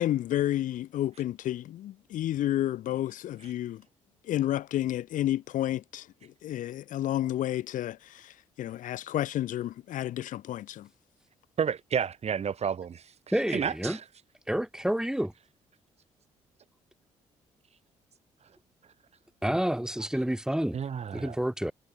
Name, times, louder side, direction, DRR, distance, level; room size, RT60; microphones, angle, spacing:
voice 1, 0.0-3.8 4.2-10.9, left 13 dB, 70° left, 4.1 m, -31 dB
voice 2, 11.6-13.1 13.5-14.0 20.7-21.4, right 7 dB, 50° right, 2.6 m, -30 dB
voice 3, 13.3-14.0 14.5-15.3 19.4-20.8 21.1-21.7, equal, 5° right, 2.6 m, -29 dB
hypercardioid pair, 55°, 14 cm